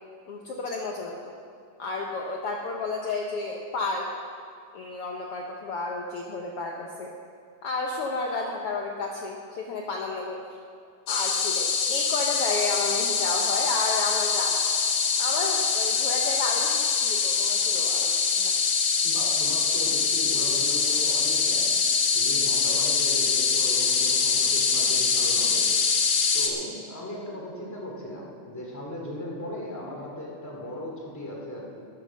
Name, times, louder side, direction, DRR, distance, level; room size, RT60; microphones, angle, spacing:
voice 1, 0.3-1.3 1.8-4.1 4.7-7.1 7.6-10.4 11.1-14.6 15.2-18.5, left 3 dB, 85° left, 0 dB, 1.2 m, -32 dB
sound 1, 11.1-26.5, left 5 dB, 65° left, 2.1 m, -24 dB
voice 2, 19.0-21.7 22.1-25.6 26.3-31.8, left 1 dB, 5° left, -2 dB, 1.8 m, -37 dB
13.0 x 10.5 x 6.3 m, 2.4 s
omnidirectional pair, 3.9 m